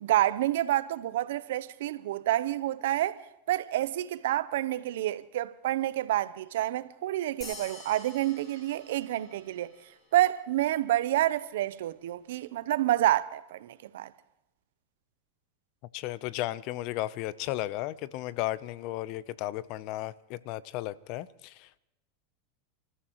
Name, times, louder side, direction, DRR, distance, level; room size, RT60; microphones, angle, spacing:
voice 1, 0.0-3.2 3.5-9.7 10.1-14.1, right 14 dB, 75° right, 0.7 m, -28 dB
sound 1, 7.4-10.2, left 3 dB, 35° left, 5.3 m, -48 dB
voice 2, 15.9-21.8, left 16 dB, 55° left, 0.6 m, -34 dB
30.0 x 14.0 x 3.1 m
hypercardioid pair, 110°, 0 cm